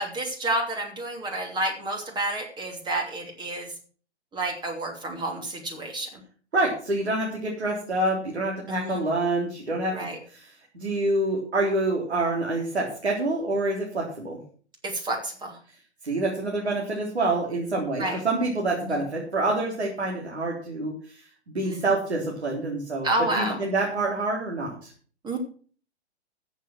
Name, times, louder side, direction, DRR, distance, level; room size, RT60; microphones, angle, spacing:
voice 1, 0.0-3.7 4.3-6.2 8.7-9.0 9.9-10.2 14.8-15.6 18.0-18.2 18.8-19.0 21.6-21.8 23.0-23.6 25.2-25.4, right 1 dB, 15° right, 2 dB, 2.8 m, -30 dB
voice 2, 6.5-10.5 10.7-14.4 16.0-21.2 21.5-23.1 23.3-24.9, right 2 dB, 70° right, -2 dB, 3.9 m, -27 dB
14.0 x 7.4 x 6.0 m, 0.43 s
figure-of-eight pair, 115°, 34 cm